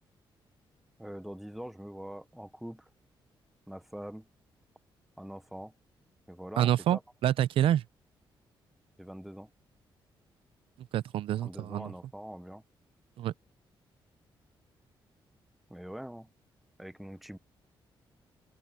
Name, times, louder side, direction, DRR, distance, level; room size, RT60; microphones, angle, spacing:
voice 1, 1.0-2.9 3.7-4.3 5.2-5.7 6.3-7.0 9.0-9.5 11.4-12.6 15.7-16.3 16.8-17.4, equal, ahead, 0.6 m, -43 dB
voice 2, 6.6-7.8 10.9-11.9 13.2-13.3, right 11 dB, 85° right, 0.5 m, -27 dB
open air
wide cardioid pair, 165°, 9 cm